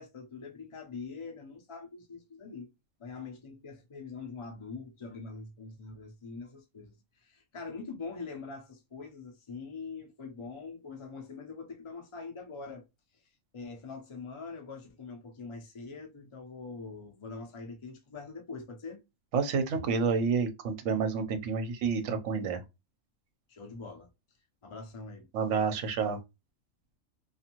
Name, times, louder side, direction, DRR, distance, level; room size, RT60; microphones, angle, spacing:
voice 1, 0.0-2.7 3.0-12.9 13.1-13.2 13.5-19.0 23.5-24.1 24.6-25.3, left 4 dB, 55° left, 0.3 m, -43 dB
voice 2, 19.3-22.6 25.3-26.2, right 5 dB, 65° right, 0.9 m, -29 dB
2.5 x 2.4 x 2.8 m
omnidirectional pair, 1.4 m